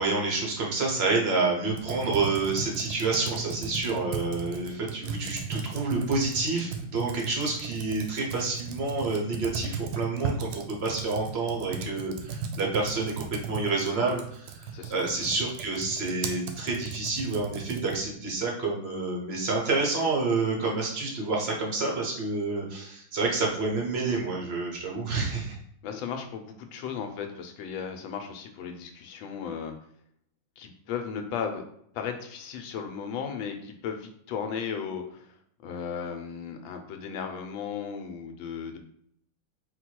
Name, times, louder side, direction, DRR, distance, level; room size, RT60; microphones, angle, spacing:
voice 1, 0.0-25.6, right 3 dB, 65° right, -2 dB, 0.6 m, -28 dB
Computer keyboard, 1.7-18.1, right 5 dB, 85° right, 1.5 m, -36 dB
voice 2, 25.8-29.7 30.6-31.6 31.9-35.3 35.6-38.8, left 7 dB, 75° left, 5 dB, 1.4 m, -35 dB
4.1 x 2.2 x 4.4 m, 0.69 s
omnidirectional pair, 2.2 m